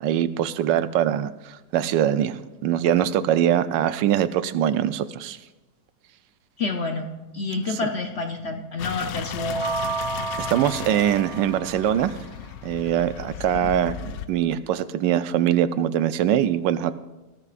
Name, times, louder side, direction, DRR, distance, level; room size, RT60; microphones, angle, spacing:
voice 1, 0.0-5.4 7.7-7.8 10.4-12.2 12.6-14.0 14.3-16.9, right 10 dB, 85° right, 13 dB, 1.3 m, -23 dB
voice 2, 6.6-9.6 13.5-13.6, left 3 dB, 55° left, 4 dB, 0.8 m, -29 dB
sound 1, 8.8-14.3, left 9 dB, 85° left, 1.4 m, -36 dB
sound 2, 9.4-12.1, right 4 dB, 35° right, 1.6 m, -31 dB
19.0 x 13.0 x 2.5 m, 1.1 s
omnidirectional pair, 1.9 m